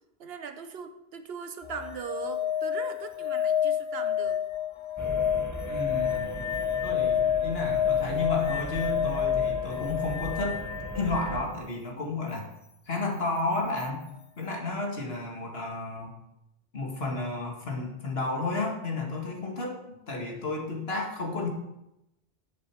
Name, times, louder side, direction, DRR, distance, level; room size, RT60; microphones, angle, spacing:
voice 1, 0.2-4.4, right 6 dB, 75° right, 9 dB, 1.1 m, -39 dB
sound 1, 1.6-11.4 13.8-13.9, left 9 dB, 50° left, 0.3 m, -29 dB
sound 2, 5.0-11.4, right 1 dB, 20° right, 1.0 m, -38 dB
voice 2, 5.7-6.4 6.8-10.6 10.9-12.5 12.9-14.1 14.4-16.1 16.7-19.8 20.1-21.5, left 3 dB, 70° left, 1 dB, 2.1 m, -32 dB
10.5 x 7.4 x 4.7 m, 0.88 s
omnidirectional pair, 1.1 m